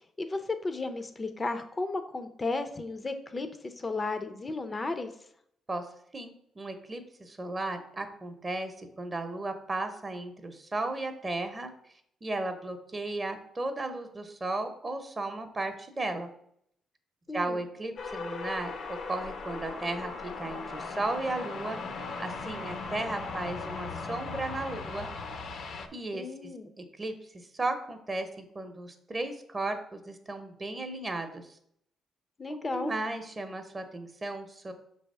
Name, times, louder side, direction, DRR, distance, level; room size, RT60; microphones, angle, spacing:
voice 1, 0.2-5.1 17.3-17.6 26.1-26.7 32.4-32.9, left 3 dB, 25° left, 8 dB, 0.6 m, -34 dB
voice 2, 6.1-11.7 12.2-16.3 17.3-21.8 22.2-25.1 25.9-31.5 32.7-34.7, right 2 dB, 25° right, 7 dB, 0.9 m, -35 dB
sound 1, 18.0-25.9, left 4 dB, 60° left, 0.8 m, -38 dB
5.8 x 3.4 x 5.4 m, 0.70 s
cardioid pair, 90°, 0 cm